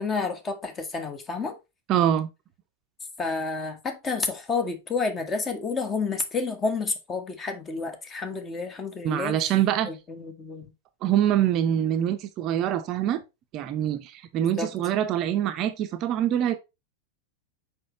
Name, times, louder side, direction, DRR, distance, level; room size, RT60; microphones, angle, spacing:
voice 1, 0.0-1.6 3.2-9.5 9.9-10.7 14.4-14.7, left 4 dB, 20° left, 1.3 m, -30 dB
voice 2, 1.9-2.3 9.0-9.9 11.0-13.2 13.5-16.6, right 11 dB, 35° right, 0.6 m, -24 dB
6.3 x 5.2 x 3.1 m
figure-of-eight pair, 90°, 0 cm